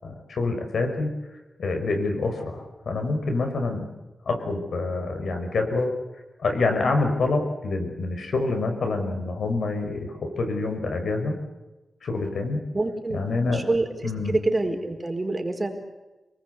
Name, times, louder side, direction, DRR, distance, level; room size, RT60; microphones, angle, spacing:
voice 1, 0.0-1.1 1.6-3.9 4.3-6.0 6.4-11.4 12.0-12.6 13.1-13.6 14.0-14.4, left 3 dB, 85° left, 5 dB, 5.6 m, -26 dB
voice 2, 12.7-15.8, right 2 dB, 25° right, 3 dB, 4.5 m, -27 dB
29.0 x 19.5 x 8.4 m, 1.1 s
wide cardioid pair, 105°, 0 cm